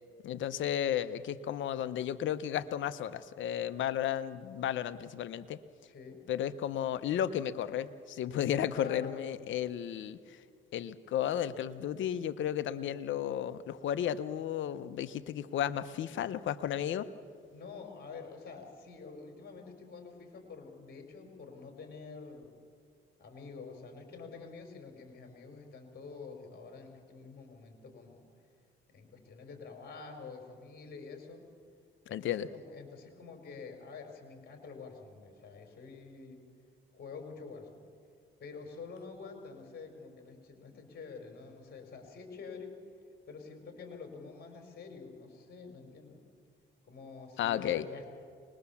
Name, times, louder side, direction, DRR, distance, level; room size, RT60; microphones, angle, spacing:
voice 1, 0.2-5.6 6.3-10.4 10.7-17.1 32.1-32.5 47.4-47.9, left 10 dB, 75° left, 13 dB, 0.9 m, -33 dB
voice 2, 5.8-6.2 8.7-9.1 17.5-22.5 23.2-28.3 28.9-31.4 32.0-36.4 36.9-37.8 38.4-42.7 43.3-46.2 46.8-48.1, left 4 dB, 50° left, 3 dB, 4.9 m, -47 dB
24.0 x 21.0 x 7.2 m, 2.1 s
cardioid pair, 90°, 20 cm